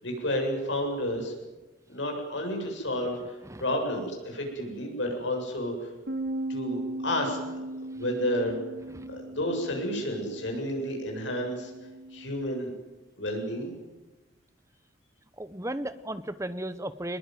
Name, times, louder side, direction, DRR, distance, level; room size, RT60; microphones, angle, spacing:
voice 1, 0.0-1.3 1.9-5.9 6.5-7.4 7.9-8.6 9.1-11.7 12.1-12.7 13.2-13.7, left 1 dB, 70° left, 2 dB, 7.8 m, -31 dB
Bass guitar, 6.1-12.3, right 1 dB, 65° right, 2.8 m, -38 dB
voice 2, 15.4-17.2, right 1 dB, 15° right, 13 dB, 1.0 m, -35 dB
23.0 x 21.0 x 9.5 m, 1.1 s
head